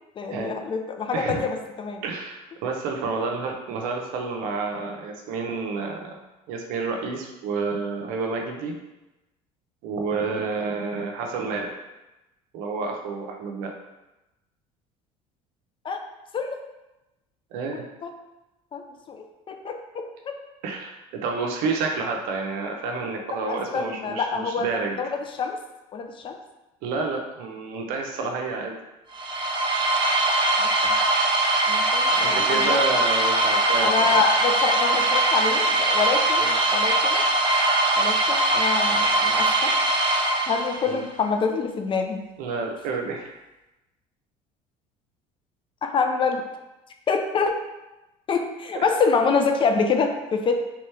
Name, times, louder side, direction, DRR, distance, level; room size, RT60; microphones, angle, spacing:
voice 1, 0.2-2.0 15.8-16.0 16.3-16.6 18.0-18.1 18.7-19.8 23.5-24.7 25.0-25.6 25.9-26.4 30.6-31.0 31.7-32.8 33.8-37.2 38.0-39.7 40.5-42.2 45.8-46.4 47.1-47.6 48.3-50.5, left 5 dB, 35° left, 5 dB, 0.5 m, -26 dB
voice 2, 1.1-1.4 2.0-6.2 6.5-8.8 9.8-11.7 12.5-13.7 17.5-17.8 20.6-25.0 26.8-28.8 32.1-34.3 36.4-36.6 40.8-41.0 42.4-43.3 48.7-48.9, right 4 dB, 75° right, 2 dB, 0.7 m, -29 dB
sound 1, 29.1-41.0, right 2 dB, 35° right, 0.7 m, -21 dB
3.5 x 3.0 x 3.3 m, 1.0 s
supercardioid pair, 95°, 14 cm